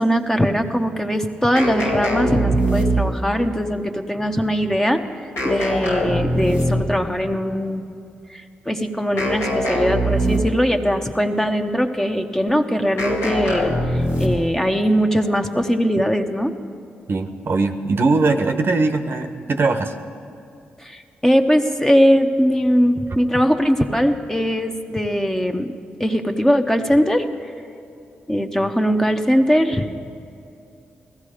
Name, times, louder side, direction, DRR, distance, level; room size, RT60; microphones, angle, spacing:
voice 1, 0.0-7.8 8.3-16.5 20.8-25.7 26.0-27.5 28.3-29.9, equal, 10° left, 5 dB, 1.1 m, -20 dB
sound 1, 1.5-3.3 5.4-7.0 9.2-10.7 13.0-14.6, equal, 75° left, 2.4 m, -22 dB
voice 2, 17.1-19.9, right 3 dB, 55° right, 7 dB, 0.9 m, -20 dB
15.5 x 14.0 x 5.0 m, 2.6 s
hypercardioid pair, 40°, 5 cm